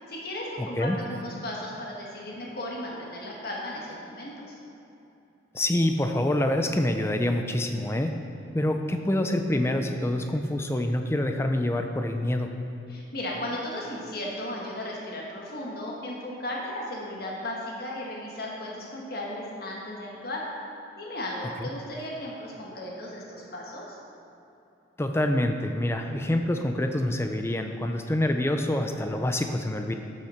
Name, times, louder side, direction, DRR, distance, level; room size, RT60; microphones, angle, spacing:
voice 1, 0.1-4.6 12.9-20.4 21.0-24.0, left 1 dB, 50° left, -3 dB, 1.6 m, -35 dB
voice 2, 0.6-1.0 5.5-8.2 8.5-12.5 21.6-21.7 25.0-29.9, left 1 dB, 15° left, 5 dB, 0.4 m, -26 dB
13.5 x 6.0 x 4.3 m, 2.9 s
head